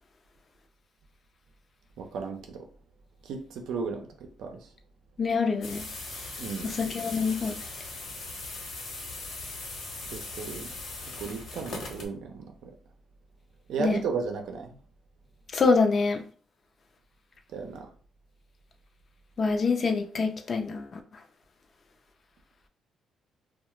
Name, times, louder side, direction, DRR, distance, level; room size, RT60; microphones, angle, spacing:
voice 1, 2.0-2.7 3.2-4.7 6.4-6.8 10.1-10.7 11.2-12.7 13.7-14.8 17.5-17.9, right 5 dB, 80° right, 0.5 m, -35 dB
voice 2, 5.2-5.8 6.6-7.6 13.8-14.0 15.5-16.2 19.4-21.0, left 4 dB, 45° left, 0.4 m, -25 dB
sound 1, 5.6-12.1, left 2 dB, 65° left, 0.9 m, -39 dB
2.3 x 2.1 x 3.0 m
cardioid pair, 90°, 0 cm